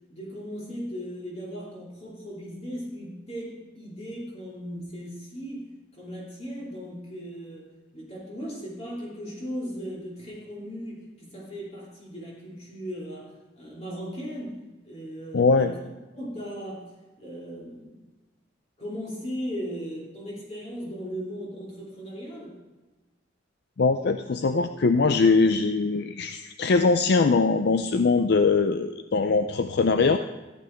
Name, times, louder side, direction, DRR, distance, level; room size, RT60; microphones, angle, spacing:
voice 1, 0.1-5.7 5.9-7.7 7.9-14.6 14.8-15.8 16.1-16.9 17.2-18.0 18.8-22.6, equal, 35° left, -5 dB, 2.7 m, -37 dB
voice 2, 15.3-15.7 23.8-30.2, left 4 dB, 60° left, 8 dB, 0.5 m, -22 dB
14.0 x 8.7 x 4.4 m, 1.2 s
head